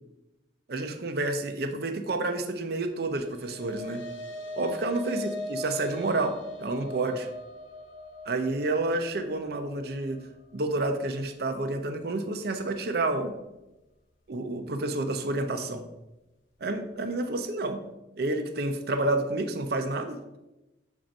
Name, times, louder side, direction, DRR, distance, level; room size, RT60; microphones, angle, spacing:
voice 1, 0.7-4.1 4.6-7.3 8.3-10.2 10.5-13.3 14.3-15.8 16.6-17.8 18.2-20.2, right 2 dB, 55° right, 6 dB, 0.6 m, -29 dB
sound 1, 3.0-11.6, left 1 dB, 85° left, 0.6 m, -40 dB
7.4 x 2.6 x 5.2 m, 0.99 s
head